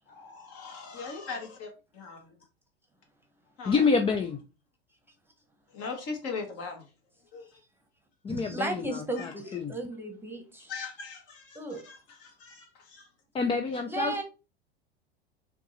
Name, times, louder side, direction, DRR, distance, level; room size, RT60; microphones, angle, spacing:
voice 1, 0.1-2.3 3.6-3.8 5.7-6.9 7.3-7.5 9.2-9.3 10.7-13.1, left 4 dB, 50° left, 1.7 m, -40 dB
voice 2, 3.7-4.4 8.2-9.7 13.3-14.2, left 4 dB, 15° left, 0.4 m, -28 dB
voice 3, 8.3-10.7 11.5-11.8 13.9-14.2, right 2 dB, 5° right, 1.1 m, -35 dB
4.4 x 2.7 x 4.0 m
hypercardioid pair, 95°, 32 cm